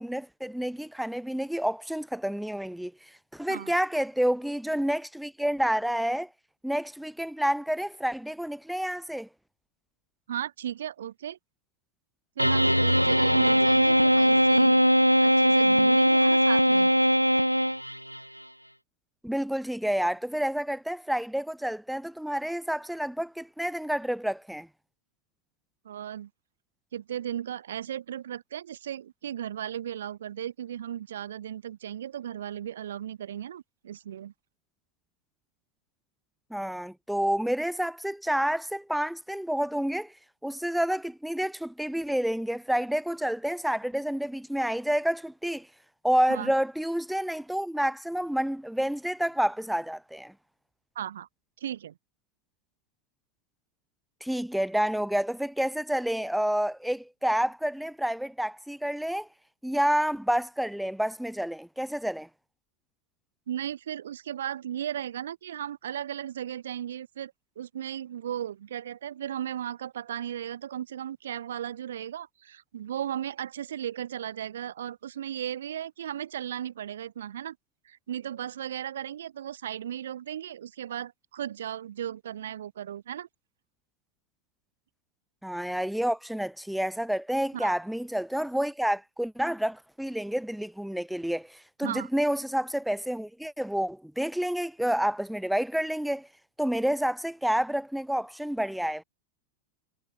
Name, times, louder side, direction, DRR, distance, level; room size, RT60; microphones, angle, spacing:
voice 1, 0.0-6.3 6.6-9.3 19.2-24.7 36.5-40.1 40.4-45.7 46.0-50.3 54.2-59.3 59.6-62.3 85.4-96.3 96.6-99.0, equal, ahead, 1.9 m, -29 dB
voice 2, 10.3-11.4 12.4-14.9 15.2-16.9 25.8-26.3 26.9-34.3 46.3-46.5 51.0-51.3 51.6-51.9 63.5-77.6 77.9-83.3 87.5-87.7 91.8-92.1, right 10 dB, 60° right, 3.7 m, -36 dB
sound 1, 12.4-18.2, equal, 90° right, 0.3 m, -21 dB
figure-of-eight pair, 90°, 0 cm